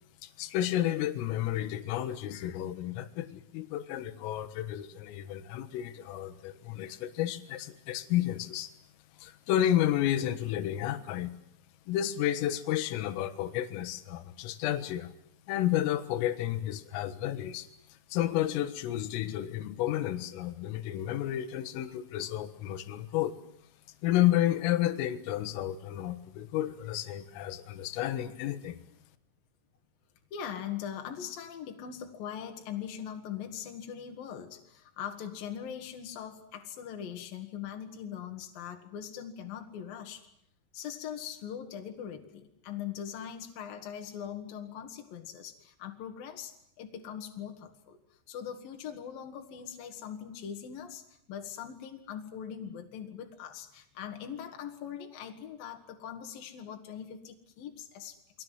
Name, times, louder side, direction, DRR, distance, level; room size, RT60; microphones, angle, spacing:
voice 1, 0.2-8.7 9.2-11.4 11.9-15.1 15.5-17.7 18.1-23.3 24.0-28.8, left 12 dB, 80° left, 11 dB, 4.0 m, -31 dB
voice 2, 30.3-40.3 40.7-58.4, left 9 dB, 55° left, 4 dB, 3.1 m, -41 dB
29.5 x 22.5 x 7.8 m, 0.73 s
omnidirectional pair, 5.8 m